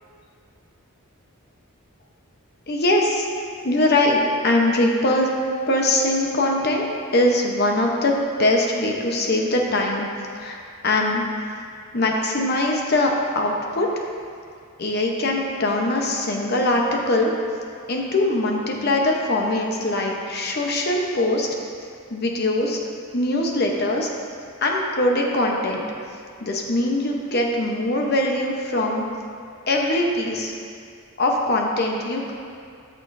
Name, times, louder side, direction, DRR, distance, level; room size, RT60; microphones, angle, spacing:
voice 1, 2.7-3.3 3.6-5.3 5.7-6.8 7.1-10.1 10.3-11.3 11.9-13.9 14.8-17.3 17.9-21.5 22.1-22.8 23.1-24.1 24.6-25.9 26.4-29.1 29.7-30.5 31.2-32.3, left 1 dB, 45° left, 0 dB, 0.9 m, -22 dB
13.0 x 6.2 x 2.6 m, 2.3 s
head